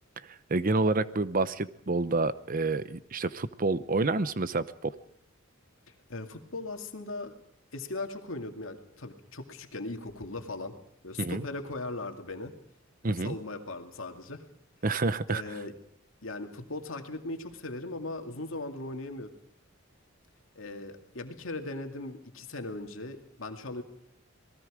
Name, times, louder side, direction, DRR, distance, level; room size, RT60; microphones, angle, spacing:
voice 1, 0.3-5.0 11.2-11.4 13.0-13.4 14.8-15.4, right 3 dB, 40° right, 15 dB, 0.8 m, -28 dB
voice 2, 6.1-7.3 7.7-10.7 11.0-12.5 13.0-14.4 15.3-15.8 16.2-19.3 20.6-23.8, left 2 dB, 75° left, 5 dB, 2.3 m, -38 dB
27.5 x 19.5 x 5.0 m, 0.67 s
head